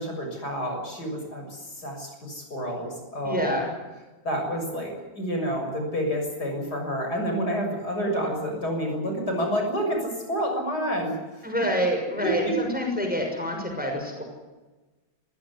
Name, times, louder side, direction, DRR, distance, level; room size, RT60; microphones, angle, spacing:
voice 1, 0.0-3.5 4.2-11.2 12.2-12.6, equal, 50° left, 2 dB, 7.4 m, -29 dB
voice 2, 3.2-3.7 11.4-14.2, equal, 5° right, 2 dB, 6.3 m, -27 dB
26.0 x 16.0 x 9.8 m, 1.2 s
omnidirectional pair, 2.2 m